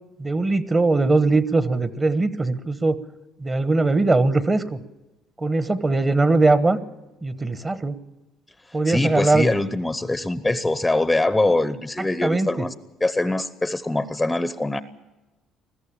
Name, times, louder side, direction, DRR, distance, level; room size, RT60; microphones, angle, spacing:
voice 1, 0.2-3.0 3.4-4.6 5.4-6.8 7.2-7.9 8.7-9.4 12.2-12.5, right 3 dB, 20° right, 14 dB, 1.1 m, -20 dB
voice 2, 8.9-12.7 13.0-14.8, left 2 dB, 10° left, 14 dB, 0.8 m, -23 dB
21.0 x 14.5 x 8.8 m, 1.1 s
cardioid pair, 115°, 0 cm